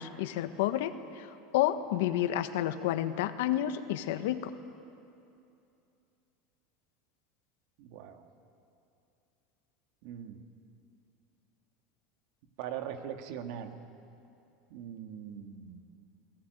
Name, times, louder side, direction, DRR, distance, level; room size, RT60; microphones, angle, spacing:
voice 1, 0.0-4.5, left 12 dB, 80° left, 9 dB, 1.4 m, -30 dB
voice 2, 7.8-8.2 10.0-10.4 12.6-13.7 14.7-15.9, right 9 dB, 70° right, 5 dB, 2.2 m, -41 dB
27.5 x 19.0 x 9.3 m, 2.7 s
supercardioid pair, 115°, 0 cm